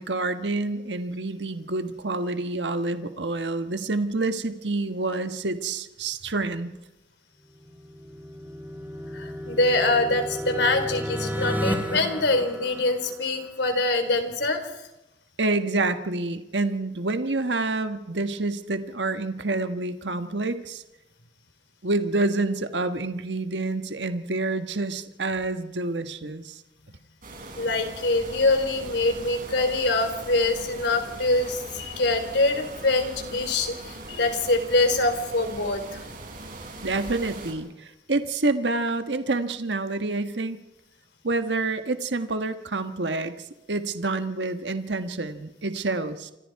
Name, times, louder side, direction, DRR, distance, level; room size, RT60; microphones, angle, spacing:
voice 1, 0.0-6.7 15.4-20.8 21.8-26.6 36.8-40.6 41.2-46.3, right 2 dB, 75° right, 8 dB, 1.5 m, -28 dB
sound 1, 7.6-13.5, equal, 10° right, 2.9 m, -32 dB
voice 2, 9.1-14.6 27.6-35.8, left 2 dB, 70° left, 7 dB, 3.7 m, -24 dB
sound 2, 27.2-37.5, right 2 dB, 50° right, 6.1 m, -40 dB
28.5 x 25.0 x 4.8 m, 0.93 s
head